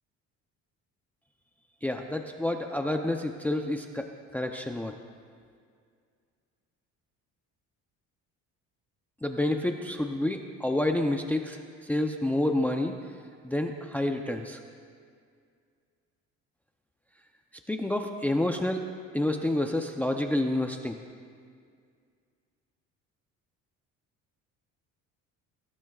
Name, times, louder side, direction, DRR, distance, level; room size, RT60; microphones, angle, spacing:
voice 1, 1.8-4.1 4.3-4.9 9.2-12.9 13.4-14.6 17.7-18.8 19.1-21.0, left 1 dB, 5° left, 4 dB, 0.5 m, -29 dB
24.5 x 15.5 x 2.4 m, 2.1 s
cardioid pair, 145°, 30 cm